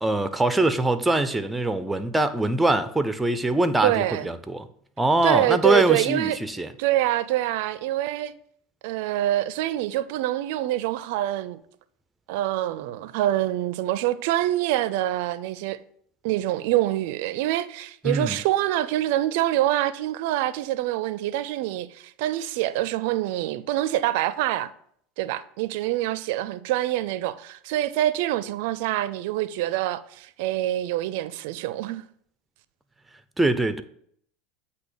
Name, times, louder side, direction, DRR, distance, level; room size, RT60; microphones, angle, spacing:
voice 1, 0.0-4.7 5.0-6.7 18.0-18.4 33.4-33.8, right 2 dB, 5° right, 0.6 m, -23 dB
voice 2, 3.8-4.3 5.2-6.4 6.8-8.3 8.8-11.6 12.3-15.8 16.2-24.7 25.2-32.0, right 14 dB, 70° right, 0.4 m, -25 dB
8.3 x 2.8 x 6.2 m
supercardioid pair, 105°, 0 cm